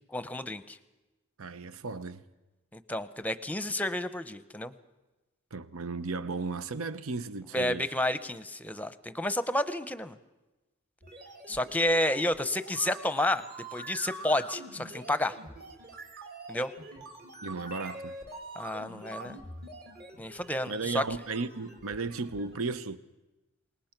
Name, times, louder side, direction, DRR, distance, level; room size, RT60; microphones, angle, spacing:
voice 1, 0.1-0.8 2.7-4.7 7.5-10.2 11.5-13.4 13.7-15.4 16.5-16.7 18.6-19.4 20.2-21.0, left 1 dB, 5° left, 0.8 m, -30 dB
voice 2, 1.4-2.2 5.5-7.9 17.4-18.1 20.7-23.0, right 4 dB, 75° right, 0.8 m, -35 dB
sound 1, 11.0-22.6, right 2 dB, 50° right, 3.2 m, -45 dB
27.5 x 19.5 x 6.0 m
head